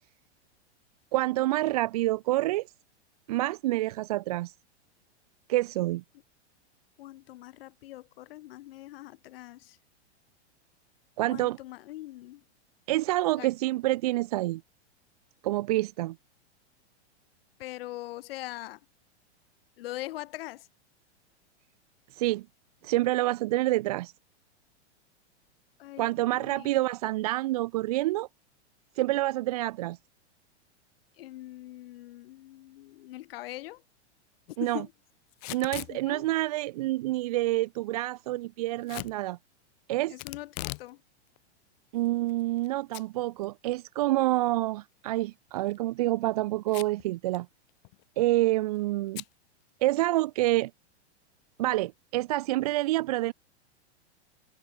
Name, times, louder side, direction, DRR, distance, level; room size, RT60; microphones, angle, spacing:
voice 1, 1.1-2.7 3.3-4.5 5.5-6.0 11.2-11.6 12.9-14.6 15.4-16.2 22.1-22.4 22.8-24.1 26.0-28.3 29.0-30.0 34.6-34.8 35.5-39.4 39.9-40.1 41.9-47.5 48.2-49.2 49.8-50.7 51.6-53.3, right 17 dB, 35° right, 0.4 m, -27 dB
voice 2, 7.0-9.8 11.3-12.4 13.4-13.5 17.6-18.8 19.8-20.7 25.8-26.9 31.2-33.8 34.6-34.9 35.9-36.2 40.1-41.0, left 16 dB, 55° left, 2.7 m, -42 dB
Packing tape duct tape / Tearing, 35.3-35.9 38.9-39.1 40.2-40.9 41.3-41.4 42.0-42.7 42.9-43.0 43.4-43.5 45.5-45.8 46.7-47.0 47.3-47.4 47.7-48.0 49.1-49.3, left 30 dB, 35° left, 1.1 m, -39 dB
supercardioid pair, 160°, 35 cm